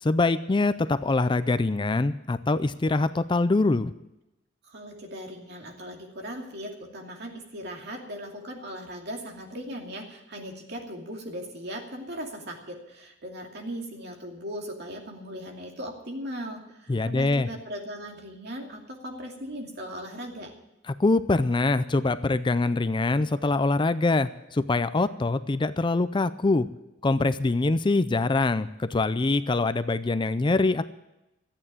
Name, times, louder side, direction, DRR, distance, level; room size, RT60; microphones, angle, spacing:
voice 1, 0.0-3.9 16.9-17.5 20.9-26.7 27.0-30.8, left 3 dB, 25° left, 13 dB, 0.4 m, -24 dB
voice 2, 4.6-20.5, equal, 60° right, 1 dB, 2.6 m, -38 dB
13.5 x 8.8 x 8.7 m, 0.93 s
head